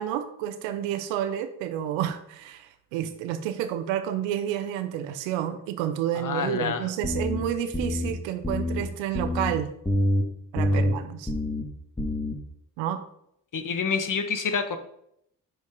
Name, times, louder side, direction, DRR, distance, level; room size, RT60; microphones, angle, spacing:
voice 1, 0.0-9.7 10.5-11.3 12.8-13.0, right 10 dB, 90° right, 10 dB, 0.7 m, -30 dB
voice 2, 6.1-6.9 10.7-10.8 13.5-14.8, left 5 dB, 45° left, 8 dB, 1.2 m, -28 dB
sound 1, 7.0-7.4 7.7-8.1 8.4-8.8 9.1-9.5 9.9-10.2 10.6-10.9 11.3-11.6 12.0-12.3, left 1 dB, 10° left, 1.8 m, -26 dB
5.6 x 5.3 x 5.2 m, 0.74 s
hypercardioid pair, 40°, 44 cm